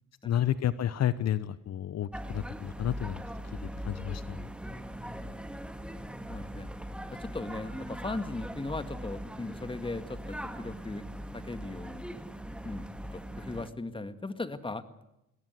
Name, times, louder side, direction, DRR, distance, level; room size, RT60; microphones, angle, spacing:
voice 1, 0.2-3.2 3.8-4.4, left 11 dB, 60° left, 15 dB, 0.9 m, -30 dB
sound 1, 2.1-13.7, equal, 5° right, 2.0 m, -40 dB
voice 2, 4.6-5.4 6.3-6.7 7.1-11.0 11.3-12.0 12.6-14.8, left 2 dB, 15° left, 11 dB, 1.9 m, -38 dB
22.0 x 17.5 x 9.7 m, 0.87 s
cardioid pair, 90°, 30 cm